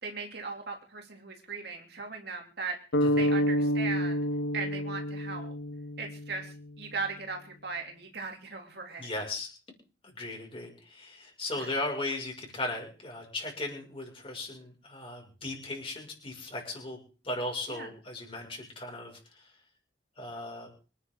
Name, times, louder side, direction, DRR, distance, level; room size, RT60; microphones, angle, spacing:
voice 1, 0.0-2.8 3.2-4.2 4.5-5.5 6.0-9.1 11.6-11.7 17.7-17.9, right 4 dB, 60° right, 3 dB, 3.1 m, -38 dB
sound 1, 2.9-6.9, equal, 90° left, 1.6 m, -29 dB
voice 2, 3.0-3.3 9.0-9.5 10.0-17.0 17.2-19.5 20.2-20.7, left 2 dB, 30° left, 0 dB, 6.4 m, -37 dB
25.5 x 10.0 x 3.9 m, 0.35 s
head